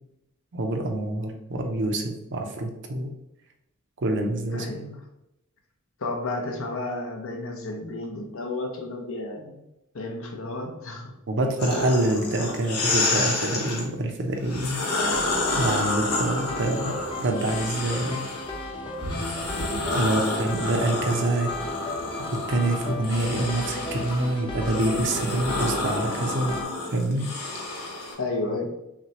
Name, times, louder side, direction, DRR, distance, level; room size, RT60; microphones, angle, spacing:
voice 1, 0.5-3.1 4.0-4.7 11.3-14.8 15.1-15.3 15.6-18.2 19.9-21.7 22.3-26.6 26.9-27.3, right 1 dB, 55° right, 3 dB, 0.6 m, -26 dB
voice 2, 4.5-5.1 6.0-9.6 9.9-11.1 15.7-16.0 20.0-20.2 28.2-28.7, left 2 dB, 65° left, 2 dB, 0.8 m, -32 dB
sound 1, 11.6-13.8 14.4-18.5 19.0-28.1, left 2 dB, 85° left, 1.1 m, -29 dB
sound 2, 15.0-26.6, left 1 dB, 20° left, 0.7 m, -34 dB
5.8 x 2.2 x 2.8 m, 0.88 s
head